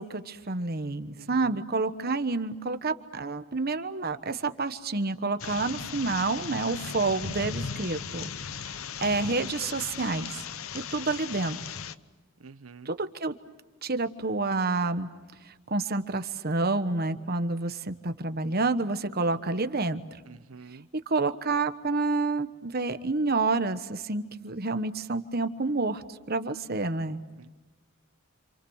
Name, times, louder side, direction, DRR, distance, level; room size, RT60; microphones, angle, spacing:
voice 1, 0.0-8.3 9.0-10.4 10.7-11.6 12.8-13.3 13.8-15.1 15.7-20.0 21.1-27.2, right 3 dB, 45° right, 9 dB, 1.2 m, -29 dB
voice 2, 1.2-1.6 12.4-12.9 20.3-20.9 27.4-27.5, right 4 dB, 90° right, 12 dB, 0.9 m, -47 dB
sound 1, 5.4-11.9, left 6 dB, 80° left, 0.8 m, -37 dB
30.0 x 27.0 x 6.4 m, 1.2 s
head